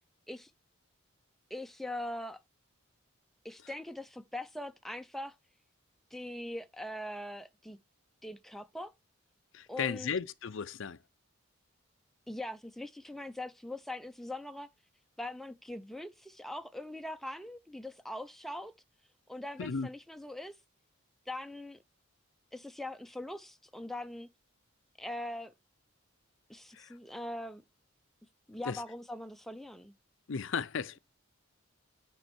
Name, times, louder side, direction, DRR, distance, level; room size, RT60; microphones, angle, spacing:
voice 1, 1.5-2.4 3.4-5.4 6.1-7.8 8.2-8.9 9.7-10.1 12.3-14.7 15.2-18.7 19.3-20.6 21.3-21.8 22.5-24.3 25.0-25.5 26.5-27.6 28.5-29.9, left 1 dB, ahead, 0.5 m, -41 dB
voice 2, 9.5-11.0 19.6-19.9 26.7-27.0 28.7-28.8 30.3-31.0, left 6 dB, 60° left, 0.5 m, -35 dB
9.4 x 5.4 x 4.3 m
head